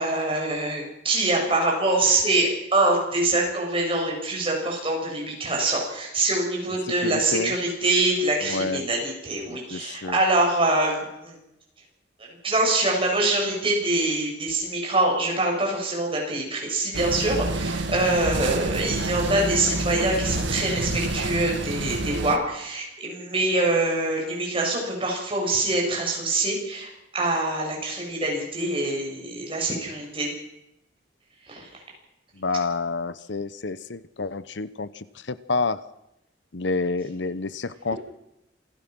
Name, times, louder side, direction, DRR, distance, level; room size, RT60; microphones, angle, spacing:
voice 1, 0.0-11.4 12.4-30.3 31.5-31.7, right 2 dB, 30° right, -1 dB, 7.5 m, -24 dB
voice 2, 7.0-7.5 8.4-8.9 9.5-10.2 32.4-35.8 36.5-38.0, left 3 dB, 75° left, 15 dB, 0.9 m, -29 dB
sound 1, 16.9-22.4, right 2 dB, 90° right, 1.6 m, -28 dB
27.5 x 15.5 x 6.2 m, 0.85 s
head